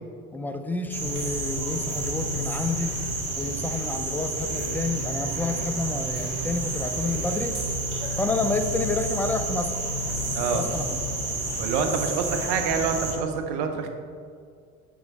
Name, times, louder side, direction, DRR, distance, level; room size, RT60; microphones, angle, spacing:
voice 1, 0.3-2.9 3.4-7.6 8.2-9.7 10.5-11.0, left 3 dB, 5° left, 7 dB, 0.4 m, -29 dB
sound 1, 0.9-13.1, right 2 dB, 80° right, 1.8 m, -30 dB
voice 2, 11.6-13.9, right 5 dB, 60° right, 5 dB, 1.1 m, -26 dB
7.2 x 6.2 x 4.2 m, 2.2 s
hypercardioid pair, 70°, 45 cm